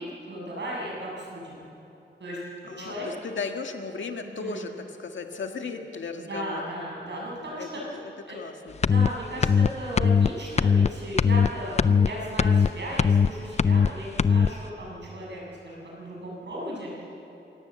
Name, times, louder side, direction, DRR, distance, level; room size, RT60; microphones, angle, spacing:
voice 1, 0.0-1.7 2.2-2.4 2.8-3.1 4.2-4.6 6.2-7.8 8.3-8.4 8.8-17.3, equal, 70° right, -3 dB, 7.5 m, -36 dB
voice 2, 2.6-6.6 7.6-8.8, left 4 dB, 85° left, 4 dB, 1.9 m, -36 dB
sound 1, 8.8-9.1 9.4-9.7 10.0-10.3 10.6-10.9 11.2-11.5 11.8-12.1 12.4-12.7 13.0-13.3 13.6-13.9 14.2-14.5, left 6 dB, 35° left, 0.4 m, -19 dB
26.5 x 18.0 x 7.6 m, 3.0 s
wide cardioid pair, 150°, 19 cm